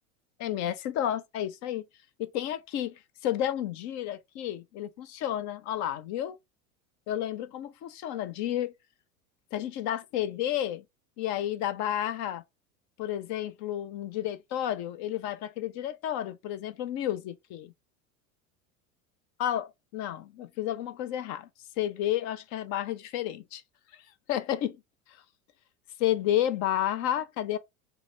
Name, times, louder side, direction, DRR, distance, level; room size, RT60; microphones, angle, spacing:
voice 1, 0.4-1.8 2.2-6.4 7.1-8.7 9.5-10.8 11.2-12.4 13.0-17.7 19.4-21.5 21.8-23.6 24.3-24.8 25.1-25.2 26.0-27.6, left 11 dB, 45° left, 0.5 m, -31 dB
3.2 x 2.1 x 3.8 m
hypercardioid pair, 90°, 42 cm